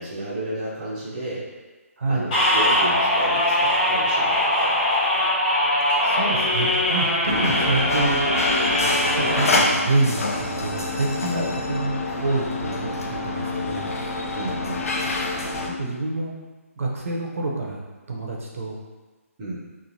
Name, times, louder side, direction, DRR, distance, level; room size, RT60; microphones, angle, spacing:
voice 1, 0.0-1.5 2.1-4.8 7.3-7.8 11.2-11.5 14.3-14.9 19.4-19.5, right 1 dB, 15° right, -10 dB, 0.5 m, -32 dB
voice 2, 2.0-2.4 6.0-8.2 9.2-13.9 15.6-16.3 16.8-17.8 18.1-18.8, right 2 dB, 65° right, -2 dB, 0.6 m, -27 dB
sound 1, 2.3-9.6, left 1 dB, 25° left, 0.9 m, -21 dB
sound 2, 7.3-15.7, left 2 dB, 70° left, 0.5 m, -27 dB
3.1 x 2.1 x 2.6 m, 1.3 s
hypercardioid pair, 170°, 8 cm